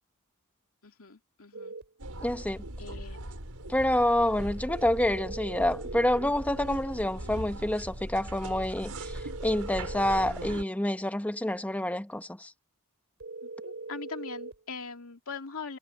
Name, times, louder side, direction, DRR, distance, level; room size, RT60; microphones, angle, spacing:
voice 1, 0.8-1.7 2.8-3.2 13.4-15.8, left 4 dB, 65° left, 2.6 m, -41 dB
sound 1, 1.5-1.9 4.7-6.2 9.0-10.4 13.2-14.6, right 3 dB, 55° right, 4.5 m, -41 dB
sound 2, 2.0-10.6, right 1 dB, 80° right, 5.8 m, -39 dB
voice 2, 2.2-2.6 3.7-12.5, left 1 dB, 5° left, 1.1 m, -28 dB
head